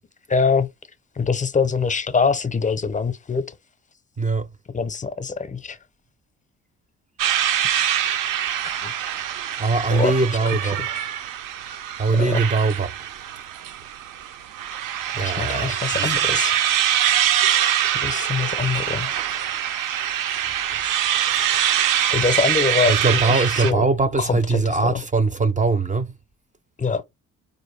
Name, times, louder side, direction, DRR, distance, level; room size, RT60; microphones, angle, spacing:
voice 1, 0.3-0.7 1.2-3.5 4.7-5.8 8.6-8.9 9.9-11.0 12.1-12.4 15.1-16.6 17.9-19.2 22.1-23.0 23.2-23.8 24.2-25.0 26.8-27.0, left 5 dB, 20° left, 0.6 m, -24 dB
voice 2, 4.2-4.5 9.6-10.8 12.0-12.9 15.2-16.1 21.3-21.5 22.9-26.1, right 3 dB, 25° right, 0.5 m, -21 dB
sound 1, 7.2-23.7, right 10 dB, 70° right, 0.6 m, -24 dB
4.1 x 2.6 x 3.2 m
supercardioid pair, 65°, 34 cm